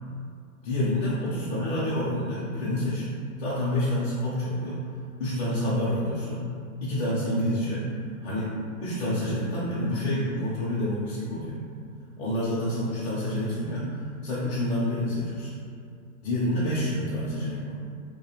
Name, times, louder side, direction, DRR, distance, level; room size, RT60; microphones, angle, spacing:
voice 1, 0.6-3.1 3.4-4.9 5.2-6.5 6.8-7.9 8.2-8.5 8.8-11.6 12.2-15.6 16.2-17.8, left 1 dB, 50° left, -8 dB, 0.6 m, -28 dB
2.3 x 2.2 x 2.8 m, 2.3 s
hypercardioid pair, 145°, 42 cm